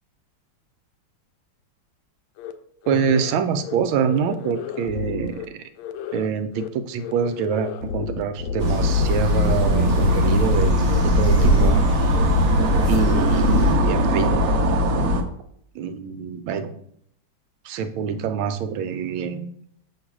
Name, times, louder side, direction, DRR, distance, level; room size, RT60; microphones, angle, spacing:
sound 1, 2.4-2.5 2.8-3.3 3.6-3.8 4.0-5.5 5.8-6.3 6.5-6.7 7.0-10.6 10.8-11.0 11.3-11.8 12.1-12.2 12.5-13.8, left 7 dB, 75° left, 1.2 m, -32 dB
voice 1, 2.9-5.6 6.1-11.8 12.9-14.4 15.0-15.1 15.7-16.7 17.6-19.5, right 7 dB, 80° right, 9 dB, 1.4 m, -25 dB
sound 2, 8.6-13.7, right 2 dB, 25° left, 1.8 m, -23 dB
sound 3, 8.6-15.2, left 2 dB, 65° right, 0.8 m, -20 dB
7.6 x 3.1 x 6.0 m, 0.68 s
omnidirectional pair, 2.2 m